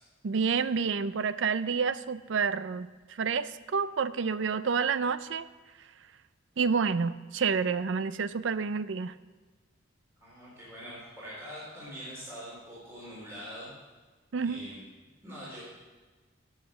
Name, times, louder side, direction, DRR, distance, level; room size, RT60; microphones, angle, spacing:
voice 1, 0.2-5.5 6.6-9.1 14.3-14.7, right 5 dB, 70° right, 15 dB, 0.5 m, -29 dB
voice 2, 10.2-13.7 14.4-14.8 15.2-15.6, equal, 15° right, -8 dB, 3.6 m, -44 dB
16.5 x 6.5 x 5.3 m, 1.3 s
head